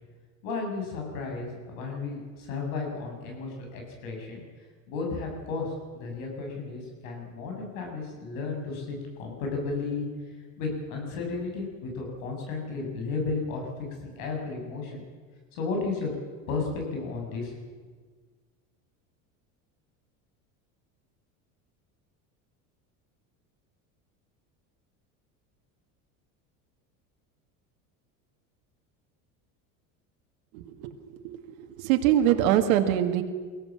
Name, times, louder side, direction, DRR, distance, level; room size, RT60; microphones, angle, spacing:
voice 1, 0.4-4.4 4.9-10.1 10.6-13.7 14.0-15.0 15.5-16.1 16.5-17.5, left 4 dB, 80° left, 1 dB, 7.7 m, -33 dB
voice 2, 30.5-31.4 31.8-33.2, right 11 dB, 80° right, 5 dB, 1.9 m, -23 dB
23.0 x 17.0 x 7.6 m, 1.5 s
supercardioid pair, 115°, 40 cm